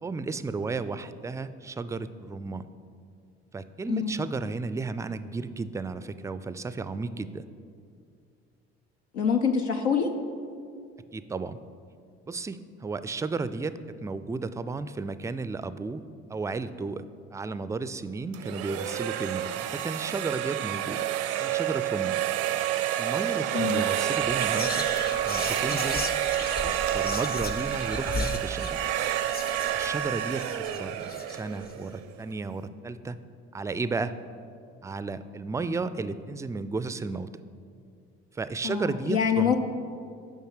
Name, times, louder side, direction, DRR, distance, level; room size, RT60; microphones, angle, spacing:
voice 1, 0.0-2.7 3.5-7.4 11.1-11.6 12.3-16.0 16.3-21.1 21.4-22.2 23.0-24.9 25.3-26.0 26.6-28.8 29.7-31.0 31.3-33.2 33.5-34.2 34.8-37.3 38.3-39.6, right 3 dB, 10° right, 13 dB, 0.3 m, -33 dB
voice 2, 9.1-10.1 23.5-23.8 38.6-39.6, left 7 dB, 90° left, 4 dB, 0.5 m, -25 dB
sound 1, 18.3-32.2, right 11 dB, 70° right, 0.5 m, -29 dB
Whispering, 23.2-23.4 23.6-31.7, left 4 dB, 30° left, 0.6 m, -37 dB
7.2 x 5.4 x 6.4 m, 2.3 s
hypercardioid pair, 55°, 32 cm